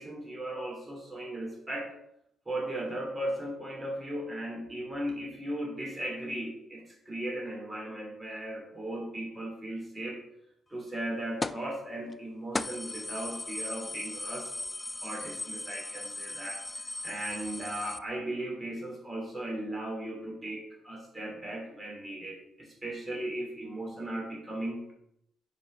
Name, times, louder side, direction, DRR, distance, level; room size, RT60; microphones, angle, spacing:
voice 1, 0.0-1.9 2.5-10.2 10.7-14.5 15.0-16.6 17.0-24.9, right 1 dB, 15° right, -2 dB, 2.9 m, -37 dB
sound 1, 11.4-11.7 12.1-12.2 12.5-18.0, left 2 dB, 20° left, 0.3 m, -37 dB
5.6 x 5.1 x 5.5 m, 0.78 s
cardioid pair, 90°, 0 cm